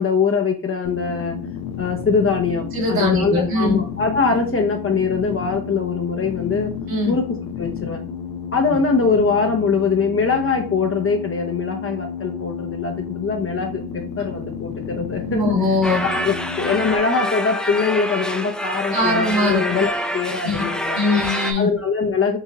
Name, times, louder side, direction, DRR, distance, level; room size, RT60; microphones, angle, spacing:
voice 1, 0.0-1.4 1.8-6.7 7.1-8.0 8.5-15.6 16.0-21.0 21.6-22.4, left 5 dB, 35° left, 3 dB, 0.7 m, -22 dB
sound 1, 0.8-17.0, left 7 dB, 70° left, 0.6 m, -32 dB
voice 2, 2.7-3.8 6.9-7.1 15.3-16.0 18.9-19.6 20.4-20.6 20.9-21.7, left 2 dB, 70° right, -2 dB, 2.1 m, -21 dB
sound 2, 15.8-21.5, equal, ahead, 0.5 m, -26 dB
4.8 x 2.7 x 2.8 m, 0.42 s
cardioid pair, 65°, 38 cm